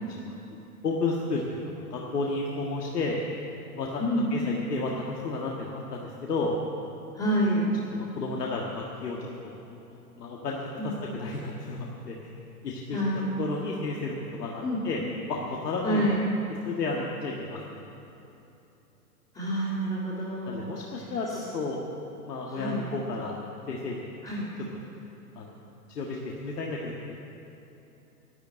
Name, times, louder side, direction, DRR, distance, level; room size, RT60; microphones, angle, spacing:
voice 1, 0.8-3.2 3.8-4.0 4.3-6.6 7.9-9.6 9.9-12.3 12.6-13.0 13.4-15.0 15.3-16.0 16.6-17.6 20.4-21.8 22.3-23.4 23.7-24.1 25.4-25.5 26.0-27.1, left 3 dB, 75° left, -2 dB, 1.8 m, -32 dB
voice 2, 7.1-7.7 10.8-10.9 12.9-13.3 14.6-14.8 15.8-16.2 19.3-20.7 21.3-21.4 22.4-22.8 24.2-24.5, equal, 15° left, -10 dB, 2.4 m, -28 dB
12.0 x 9.5 x 8.8 m, 2.9 s
hypercardioid pair, 150°, 47 cm